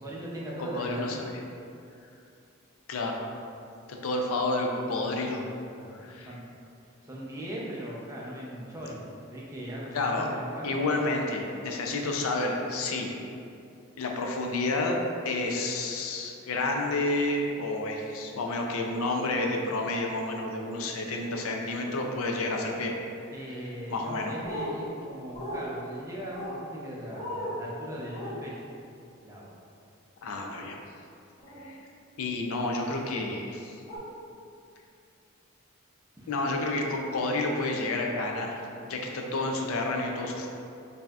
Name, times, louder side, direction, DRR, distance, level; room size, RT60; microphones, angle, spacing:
voice 1, 0.0-1.1 5.7-6.4 6.8-9.0 9.3-11.0 23.3-28.6 29.2-29.6 31.5-31.6 36.2-36.3, right 1 dB, 15° right, -5 dB, 0.5 m, -39 dB
voice 2, 0.6-1.3 2.9-3.4 3.9-5.5 5.9-6.3 9.9-10.3 10.6-13.1 14.0-15.0 15.2-22.9 23.9-24.3 30.2-30.8 31.6-31.8 32.2-33.8 36.3-40.5, left 2 dB, 75° left, 1 dB, 0.4 m, -30 dB
sound 1, 24.4-24.7 25.3-25.6 26.3-26.6 27.1-27.5 28.1-28.3 30.3-30.5 31.4-31.6 32.9-33.1 33.9-34.0, left 1 dB, 30° left, 1.3 m, -37 dB
5.4 x 2.7 x 2.3 m, 2.6 s
head